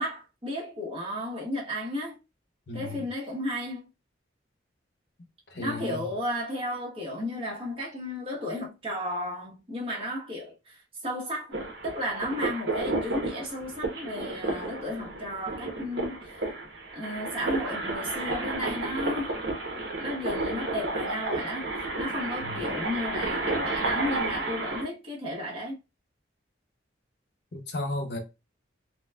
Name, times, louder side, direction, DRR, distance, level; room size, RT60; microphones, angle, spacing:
voice 1, 0.0-2.2 2.7-3.9 5.6-11.5 11.8-16.4 16.9-19.3 20.0-25.8, left 1 dB, 30° right, 1.1 m, -34 dB
voice 2, 2.7-3.1 5.5-6.1 22.4-22.6 27.5-28.2, left 1 dB, 60° left, 0.7 m, -34 dB
sound 1, 11.5-24.8, right 2 dB, 65° right, 0.8 m, -32 dB
4.0 x 2.1 x 2.2 m
head